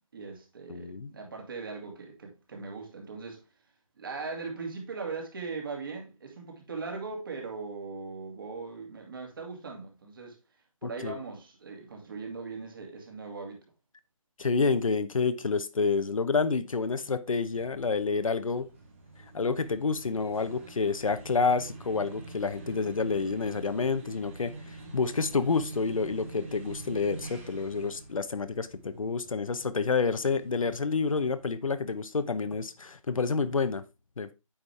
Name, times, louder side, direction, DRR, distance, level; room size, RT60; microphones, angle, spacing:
voice 1, 0.0-3.4 4.0-10.4 10.8-13.6, right 4 dB, 40° right, 2.4 m, -39 dB
voice 2, 0.7-1.1 10.8-11.2 14.4-18.7 19.3-33.8 34.2-34.3, left 4 dB, 70° left, 0.9 m, -29 dB
sound 1, 17.1-31.6, right 3 dB, 20° right, 1.3 m, -46 dB
8.9 x 5.2 x 3.4 m
hypercardioid pair, 170°, 18 cm